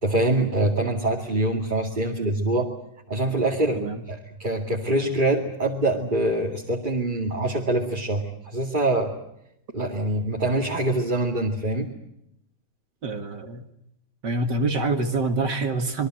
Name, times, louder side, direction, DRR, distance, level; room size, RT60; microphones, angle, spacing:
voice 1, 0.0-2.7 3.1-9.1 9.7-11.9, right 1 dB, 25° right, 0 dB, 2.5 m, -24 dB
voice 2, 13.0-13.6 14.2-16.1, right 3 dB, 55° right, 6 dB, 2.4 m, -26 dB
26.5 x 22.5 x 7.8 m, 0.80 s
omnidirectional pair, 2.3 m